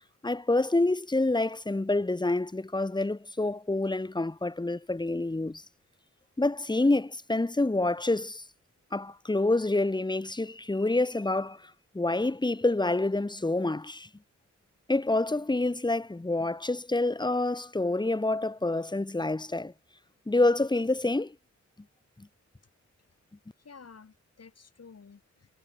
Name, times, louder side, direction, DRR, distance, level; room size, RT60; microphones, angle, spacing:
voice 1, 0.2-5.6 6.4-8.4 8.9-11.7 11.9-14.1 14.9-19.7 20.3-21.3 22.2-22.3, left 2 dB, 15° left, 1.3 m, -27 dB
voice 2, 23.6-25.6, left 5 dB, 55° left, 5.4 m, -52 dB
wide cardioid pair, 95°, 30 cm